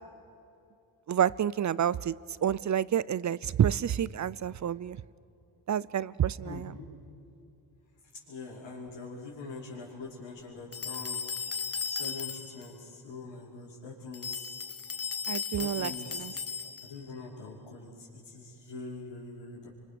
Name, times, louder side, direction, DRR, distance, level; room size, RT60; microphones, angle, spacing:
voice 1, 1.1-2.1 2.4-5.0 5.7-6.7 15.3-16.3, right 9 dB, 40° right, 19 dB, 0.5 m, -29 dB
voice 2, 6.4-7.0 8.1-11.2 11.9-14.6 15.6-16.4 16.8-19.7, left 3 dB, 75° left, -7 dB, 5.7 m, -44 dB
sound 1, 10.7-12.7 14.1-17.0, left 6 dB, 30° left, 1.0 m, -36 dB
29.5 x 25.0 x 7.0 m, 2.7 s
cardioid pair, 115°, 47 cm